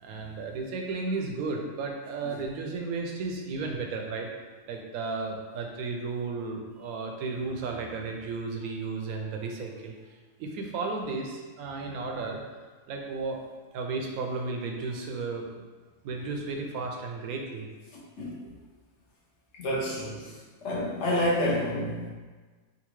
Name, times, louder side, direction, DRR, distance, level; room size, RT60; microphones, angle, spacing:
voice 1, 0.0-4.3 4.7-12.4 12.9-13.4 13.7-15.6 16.0-17.7, right 3 dB, 85° right, 2 dB, 1.0 m, -34 dB
voice 2, 19.6-20.3 20.6-22.1, left 1 dB, 55° left, -6 dB, 1.1 m, -29 dB
3.9 x 2.4 x 3.0 m, 1.4 s
omnidirectional pair, 1.5 m